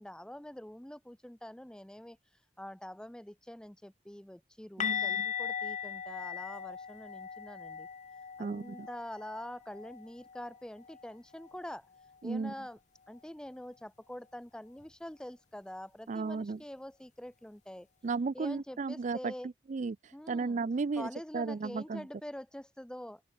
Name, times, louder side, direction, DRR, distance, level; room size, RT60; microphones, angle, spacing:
voice 1, 0.0-2.2 2.6-7.9 8.4-11.9 12.2-12.8 13.1-17.9 18.3-19.5 20.1-20.6 21.0-23.2, left 1 dB, 5° left, 0.6 m, -45 dB
sound 1, 4.8-10.6 10.8-11.1 11.4-11.6 14.8-14.9, left 8 dB, 45° left, 0.8 m, -38 dB
voice 2, 4.8-5.3 8.4-8.9 12.2-12.5 16.1-16.6 18.0-19.3 19.7-22.1, right 4 dB, 45° right, 0.4 m, -34 dB
open air
head